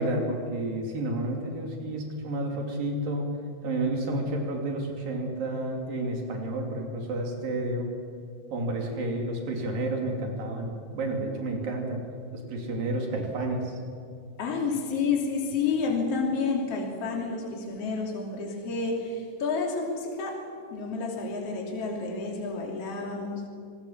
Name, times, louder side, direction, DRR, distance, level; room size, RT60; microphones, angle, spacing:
voice 1, 0.0-3.3 3.6-7.9 8.5-12.0 12.3-13.7, right 1 dB, 80° right, 2 dB, 4.8 m, -30 dB
voice 2, 14.4-20.4 20.7-23.5, left 4 dB, 45° left, 0 dB, 3.8 m, -30 dB
25.5 x 18.5 x 7.4 m, 2.4 s
omnidirectional pair, 4.0 m